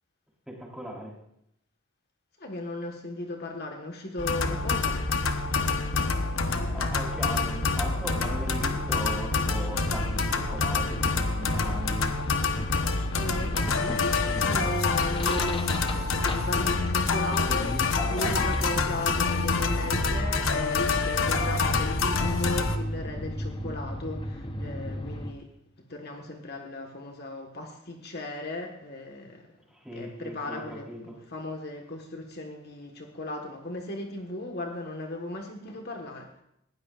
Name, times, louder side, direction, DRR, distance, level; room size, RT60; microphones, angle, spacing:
voice 1, 0.5-1.1 6.1-6.2 6.7-12.1 17.1-18.5 29.7-31.1, equal, 5° right, -4 dB, 4.2 m, -38 dB
voice 2, 2.4-5.0 13.1-17.7 18.1-25.5 25.9-29.5 29.9-36.4, left 2 dB, 50° left, 2 dB, 1.6 m, -36 dB
sound 1, 4.2-22.8, left 3 dB, 70° left, 1.1 m, -27 dB
sound 2, 9.7-25.3, left 1 dB, 25° left, 1.0 m, -38 dB
20.5 x 16.0 x 2.5 m, 0.77 s
head